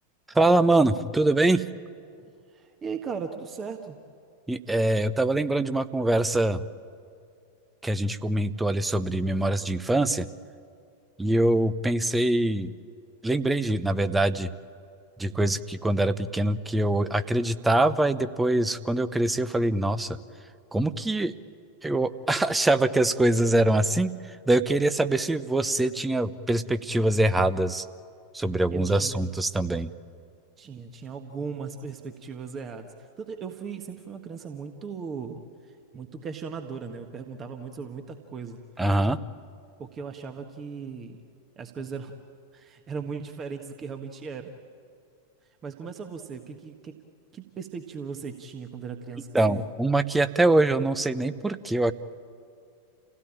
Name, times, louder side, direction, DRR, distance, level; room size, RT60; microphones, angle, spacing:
voice 1, 0.3-1.6 4.5-6.6 7.8-10.3 11.2-12.7 13.2-14.5 15.2-20.2 20.7-21.3 21.8-27.8 28.3-29.9 38.8-39.2 49.3-51.9, right 2 dB, 10° right, 11 dB, 0.8 m, -24 dB
voice 2, 2.2-4.0 28.7-29.2 30.6-38.6 39.8-41.2 41.6-42.1 42.5-44.5 45.6-46.9 47.3-49.6, right 5 dB, 25° right, 5 dB, 1.5 m, -38 dB
29.0 x 17.0 x 8.8 m, 2.4 s
figure-of-eight pair, 90°, 0 cm